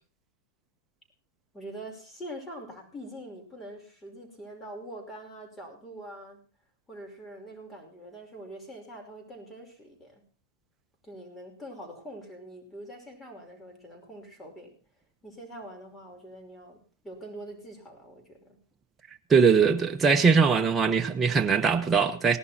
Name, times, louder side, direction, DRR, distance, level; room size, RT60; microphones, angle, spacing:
voice 1, 1.5-6.4 6.9-10.2 11.0-14.7 15.2-18.6, right 1 dB, 15° left, 5.4 m, -44 dB
voice 2, 19.3-22.4, right 5 dB, 20° right, 1.1 m, -21 dB
18.5 x 11.5 x 4.4 m
hypercardioid pair, 100°, 0 cm